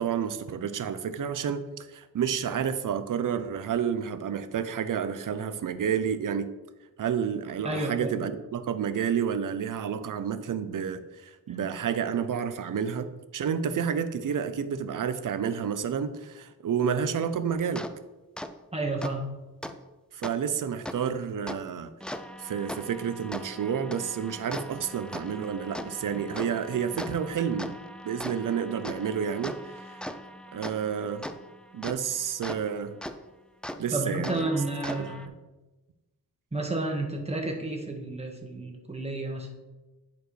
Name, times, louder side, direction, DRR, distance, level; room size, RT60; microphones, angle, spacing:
voice 1, 0.0-6.5 7.0-17.9 20.1-21.9 22.4-27.8 28.0-30.0 30.5-31.3 31.7-33.0 33.8-34.5 34.9-35.3, right 7 dB, 60° right, 11 dB, 0.6 m, -30 dB
voice 2, 7.6-8.1 18.7-19.3 33.9-35.2 36.5-39.5, right 2 dB, 15° right, 1 dB, 1.4 m, -31 dB
sound 1, 17.8-17.9 18.4-18.5 19.0-19.1 19.6-19.7 20.2-20.3 20.9-21.0 21.5-21.6 22.0-32.6 33.0-33.1 33.6-33.8 34.2-35.3, equal, 5° left, 0.3 m, -39 dB
10.5 x 4.4 x 3.2 m, 1.1 s
wide cardioid pair, 90°, 36 cm